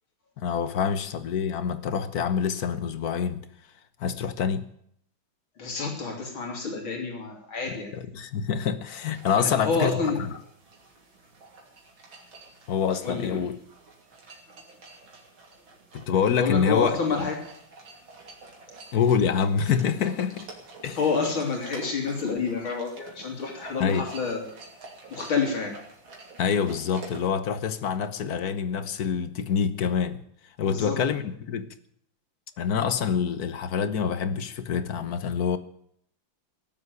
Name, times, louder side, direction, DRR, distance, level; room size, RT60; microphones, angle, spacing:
voice 1, 0.4-3.4 4.0-4.7 7.9-10.3 12.7-13.6 15.9-17.0 18.9-20.5 20.8-21.0 23.8-24.1 26.4-30.2 30.6-31.7 32.6-35.6, left 7 dB, 55° left, 1.4 m, -26 dB
voice 2, 5.6-7.9 9.4-10.2 13.0-13.4 16.4-17.4 21.0-24.5 25.1-25.8 30.6-31.0, left 4 dB, 85° left, 4.0 m, -28 dB
sound 1, 8.8-27.3, right 3 dB, 80° right, 3.7 m, -48 dB
18.0 x 7.6 x 9.5 m
omnidirectional pair, 2.2 m